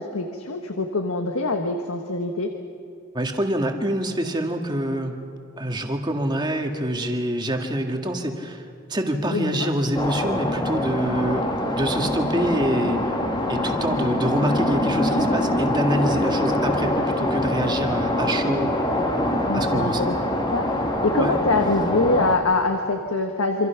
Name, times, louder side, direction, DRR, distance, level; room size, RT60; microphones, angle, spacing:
voice 1, 0.0-2.5 9.3-9.7 18.9-20.1 20.5-20.7 21.0-23.7, left 2 dB, 75° left, 5 dB, 1.5 m, -24 dB
voice 2, 3.1-5.2 5.6-13.1 13.5-18.8 19.2-20.1 21.1-21.4, right 1 dB, 20° right, 3 dB, 2.0 m, -26 dB
sound 1, 9.9-22.4, left 1 dB, 20° left, 2.1 m, -24 dB
27.5 x 26.0 x 5.9 m, 2.5 s
head